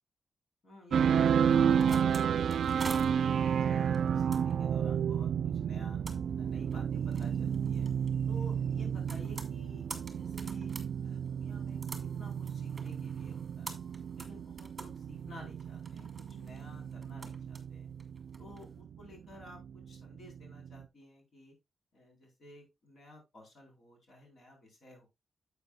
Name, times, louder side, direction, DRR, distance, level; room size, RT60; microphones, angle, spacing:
voice 1, 0.6-6.0 6.4-7.9 8.3-9.9 10.1-10.7 11.0-13.8 14.1-17.9 18.4-21.6 21.9-25.1, left 1 dB, 55° left, 2 dB, 4.3 m, -54 dB
sound 1, 0.9-20.9, right 8 dB, 75° right, 0.4 m, -31 dB
sound 2, 1.5-18.7, right 3 dB, 20° right, 1.9 m, -49 dB
11.0 x 8.0 x 2.3 m, 0.21 s
wide cardioid pair, 145°, 0 cm